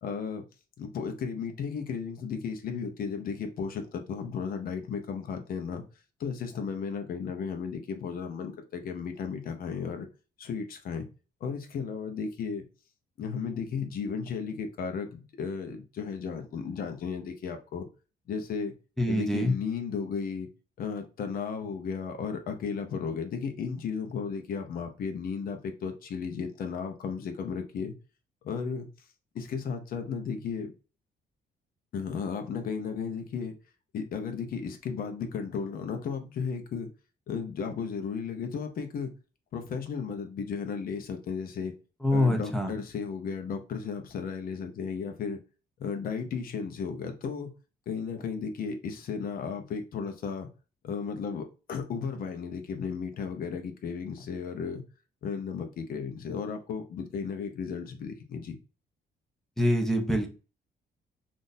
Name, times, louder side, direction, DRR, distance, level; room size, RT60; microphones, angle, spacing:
voice 1, 0.0-0.4 0.8-5.8 6.2-10.1 10.4-11.1 11.4-12.7 13.2-17.9 18.3-18.7 19.1-20.5 20.8-28.0 28.4-28.9 29.3-30.7 31.9-33.6 33.9-36.9 37.3-39.1 39.5-41.7 42.1-45.4 45.8-47.5 47.9-50.5 50.8-54.8 55.2-58.6, left 6 dB, 55° left, 0.7 m, -34 dB
voice 2, 19.0-19.5 42.0-42.7 59.6-60.3, left 1 dB, ahead, 0.6 m, -25 dB
3.6 x 2.6 x 2.6 m
cardioid pair, 150°, 18 cm